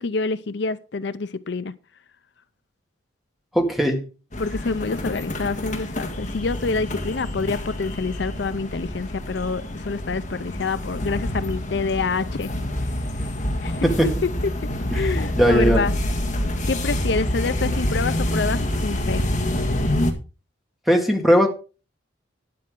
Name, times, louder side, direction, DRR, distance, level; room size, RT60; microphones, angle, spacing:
voice 1, 0.0-1.7 4.4-12.5 13.6-13.9 14.9-15.9 16.7-19.3, left 4 dB, 60° left, 14 dB, 0.5 m, -27 dB
voice 2, 3.5-4.0 13.8-14.1 14.9-15.8 20.9-21.5, equal, ahead, 2 dB, 1.9 m, -19 dB
sound 1, 4.3-20.1, left 1 dB, 40° left, 1.7 m, -27 dB
12.5 x 9.7 x 3.7 m, 0.33 s
head